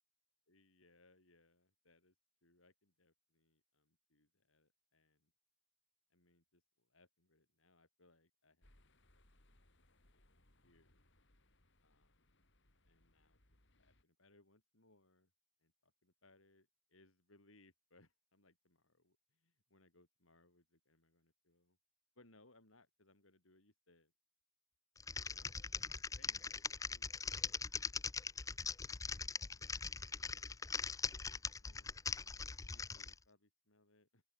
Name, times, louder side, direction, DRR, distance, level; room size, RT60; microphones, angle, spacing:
voice 1, 0.5-2.1 2.4-5.3 6.1-8.7 9.1-9.5 9.9-11.0 11.8-12.2 12.8-15.3 15.6-21.8 22.2-24.1 25.2-26.5 26.8-27.6 29.0-30.6 31.3-34.2, left 2 dB, 80° left, 7.2 m, -71 dB
sound 1, 8.6-14.0, left 1 dB, 60° left, 6.0 m, -72 dB
Typing, 25.0-33.1, left 5 dB, 15° left, 0.5 m, -41 dB
open air
head